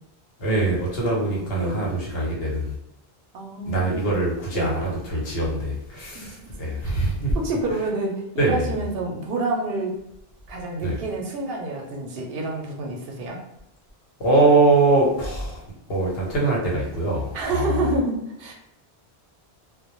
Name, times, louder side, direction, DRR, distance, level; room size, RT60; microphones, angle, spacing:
voice 1, 0.4-2.8 3.7-7.3 8.4-8.7 10.8-11.0 14.2-15.6 15.9-17.9, right 2 dB, 70° left, -3 dB, 1.0 m, -23 dB
voice 2, 1.1-1.9 3.3-4.1 4.5-4.7 6.1-6.5 7.3-10.0 10.5-13.4 17.3-18.5, right 2 dB, 70° right, 1 dB, 0.8 m, -28 dB
2.1 x 2.0 x 2.9 m, 0.82 s
omnidirectional pair, 1.0 m